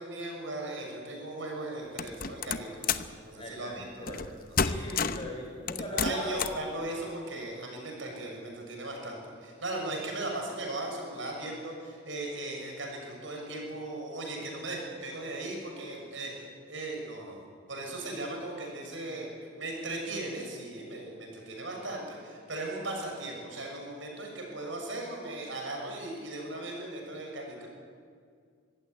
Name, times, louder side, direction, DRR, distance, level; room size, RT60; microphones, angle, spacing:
voice 1, 0.0-3.0 3.2-4.2 4.5-4.6 5.8-17.4 17.7-27.7, right 2 dB, 75° right, 0 dB, 6.8 m, -38 dB
sound 1, 2.0-3.1 4.1-4.3 4.6-5.3 5.7-6.6, left 6 dB, 45° left, 0.8 m, -30 dB
voice 2, 3.4-4.2 4.6-6.4 6.8-6.9, equal, 30° left, 0 dB, 5.9 m, -39 dB
25.0 x 15.5 x 9.6 m, 2.2 s
head